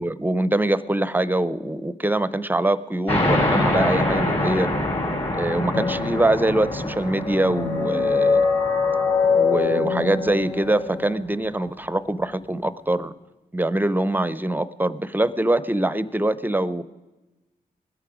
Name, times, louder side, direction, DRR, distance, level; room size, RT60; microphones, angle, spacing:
voice 1, 0.0-4.7 5.3-8.5 9.3-13.1 13.5-16.8, right 1 dB, 10° right, 16 dB, 0.6 m, -23 dB
sound 1, 3.1-10.2, left 1 dB, 40° left, 4.2 m, -26 dB
sound 2, 5.7-11.2, left 5 dB, 80° left, 2.9 m, -24 dB
20.5 x 8.4 x 5.0 m, 1.1 s
cardioid pair, 55°, 16 cm